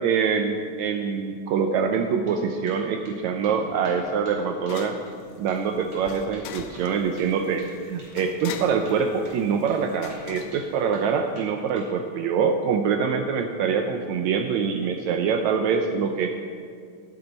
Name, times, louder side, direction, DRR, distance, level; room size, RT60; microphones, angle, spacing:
voice 1, 0.0-5.0 5.4-16.3, right 6 dB, 75° right, 5 dB, 1.8 m, -25 dB
sound 1, 2.0-2.4 2.7-3.2 3.4-3.6 3.8-4.4 4.7-4.8 5.1-5.2 5.5-5.6 5.9-7.7 8.0-8.1 8.4-8.5 8.8-9.4 9.7-9.8 10.1-11.1 11.4-11.9, right 1 dB, 50° right, 4.3 m, -49 dB
sound 2, 3.1-11.5, left 7 dB, 75° left, 1.9 m, -43 dB
11.0 x 10.5 x 5.3 m, 2.2 s
omnidirectional pair, 3.5 m